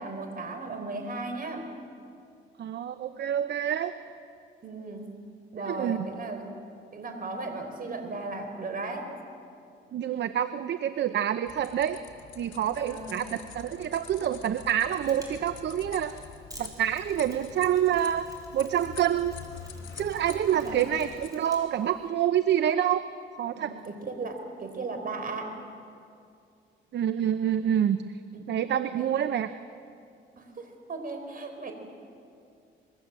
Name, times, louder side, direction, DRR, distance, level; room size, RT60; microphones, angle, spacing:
voice 1, 0.0-1.7 4.6-5.1 5.5-6.5 6.9-9.1 12.7-13.2 20.5-20.9 23.5-25.5 28.3-28.6 28.9-29.2 30.4-31.7, right 3 dB, 45° right, 5 dB, 4.5 m, -36 dB
voice 2, 2.6-3.9 5.6-6.1 9.9-12.0 12.4-16.1 16.6-18.2 18.5-19.3 19.9-23.0 23.4-23.7 26.9-28.0 28.5-29.5, right 10 dB, 60° right, 11 dB, 0.8 m, -27 dB
sound 1, 11.5-21.3, left 8 dB, 70° left, 3.3 m, -46 dB
Mechanisms, 14.9-22.1, right 1 dB, 20° right, 5.9 m, -53 dB
25.5 x 22.0 x 7.6 m, 2.5 s
cardioid pair, 90°, 20 cm